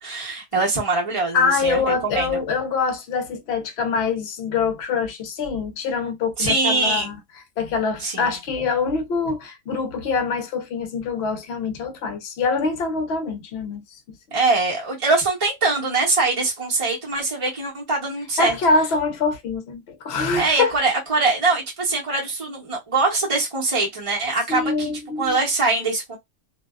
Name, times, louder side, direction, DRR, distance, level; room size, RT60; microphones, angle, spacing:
voice 1, 0.0-2.4 6.4-7.1 8.0-8.3 14.3-18.6 20.4-24.9 25.2-26.2, right 3 dB, 30° right, 0.7 m, -23 dB
voice 2, 1.3-7.2 7.6-13.8 18.4-20.7 24.5-25.4, left 4 dB, 55° left, 0.8 m, -24 dB
2.6 x 2.2 x 2.3 m
omnidirectional pair, 1.5 m